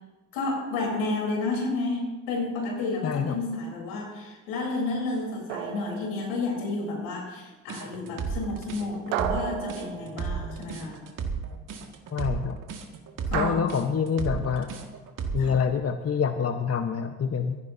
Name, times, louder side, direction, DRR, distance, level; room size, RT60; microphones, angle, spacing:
voice 1, 0.3-11.0 13.3-13.6 15.4-15.6, left 3 dB, 75° left, 0 dB, 4.0 m, -31 dB
voice 2, 3.0-3.4 12.1-12.6 13.3-14.7 15.3-17.6, left 6 dB, 40° left, 7 dB, 1.1 m, -26 dB
sound 1, 5.5-6.7 9.1-10.8 13.3-13.5, right 9 dB, 85° right, 0.8 m, -33 dB
sound 2, 7.7-15.6, right 6 dB, 60° right, 2.1 m, -33 dB
22.5 x 14.5 x 2.8 m, 1.2 s
hypercardioid pair, 45°, 36 cm